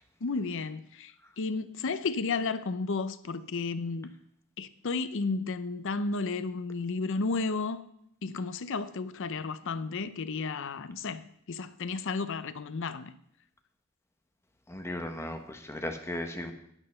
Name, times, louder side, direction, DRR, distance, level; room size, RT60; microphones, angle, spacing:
voice 1, 0.2-4.1 4.6-7.9 8.2-13.2, left 4 dB, 60° left, 0.6 m, -33 dB
voice 2, 14.7-16.5, left 1 dB, 10° left, 1.1 m, -36 dB
9.8 x 8.9 x 5.5 m
head